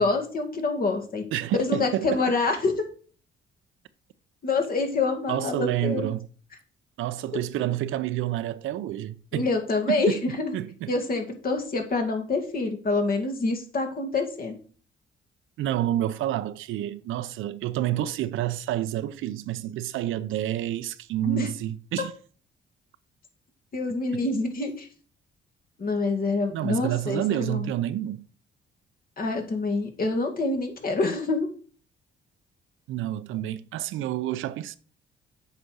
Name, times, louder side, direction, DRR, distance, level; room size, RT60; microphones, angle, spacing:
voice 1, 0.0-1.2 1.6-2.7 4.4-6.1 9.3-10.5 10.9-14.6 21.2-21.5 23.7-24.9 25.8-27.7 29.2-31.5, left 3 dB, 45° left, 2.3 m, -26 dB
voice 2, 1.3-2.2 5.3-6.3 7.0-9.5 9.9-10.2 10.5-10.9 15.6-22.1 26.5-28.2 32.9-34.8, right 13 dB, 85° right, 0.7 m, -29 dB
8.1 x 5.2 x 6.3 m
cardioid pair, 90°, 20 cm